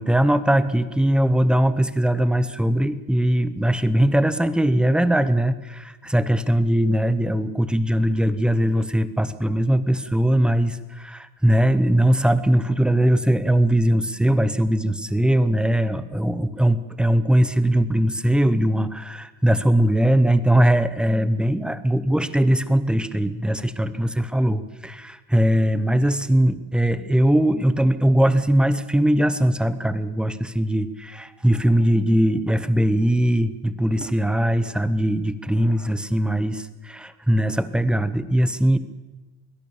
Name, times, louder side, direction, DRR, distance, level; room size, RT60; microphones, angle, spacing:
voice 1, 0.0-38.8, right 1 dB, ahead, 13 dB, 0.8 m, -20 dB
23.0 x 17.5 x 7.1 m, 1.2 s
cardioid pair, 140°, 47 cm